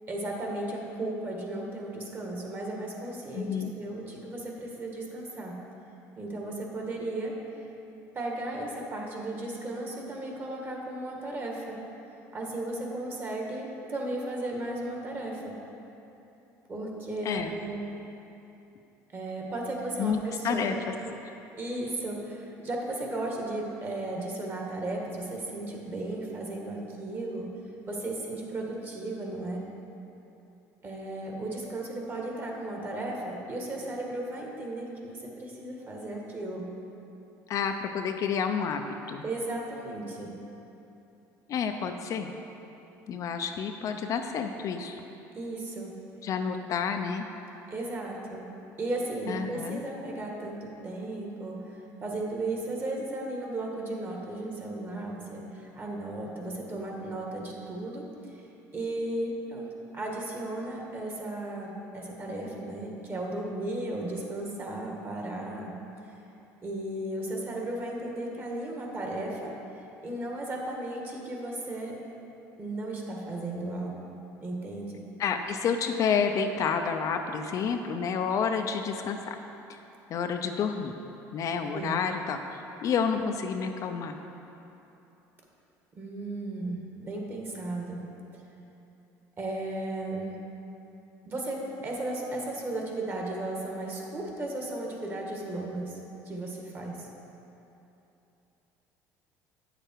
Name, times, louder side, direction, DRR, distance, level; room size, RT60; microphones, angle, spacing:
voice 1, 0.1-5.6 6.2-7.4 8.1-11.8 12.3-15.6 16.7-17.8 19.1-20.8 21.6-27.5 27.9-29.6 30.8-36.7 39.2-40.3 45.3-46.0 47.7-48.5 48.8-58.4 58.7-65.7 66.6-69.6 70.0-72.0 72.6-73.9 74.4-75.0 81.7-82.0 86.0-88.0 88.3-88.4 89.4-90.5 91.3-95.9 96.3-97.1, right 2 dB, 30° right, -1 dB, 1.8 m, -35 dB
voice 2, 3.3-3.7 17.2-17.6 20.0-20.2 20.4-20.9 21.2-21.4 37.5-38.8 39.1-39.2 41.5-42.3 43.1-45.0 46.2-47.3 49.3-49.8 75.2-79.4 79.7-79.8 80.1-81.0 81.3-84.1, left 6 dB, 50° left, 5 dB, 0.6 m, -29 dB
8.7 x 6.8 x 4.6 m, 2.9 s
supercardioid pair, 100°, 7 cm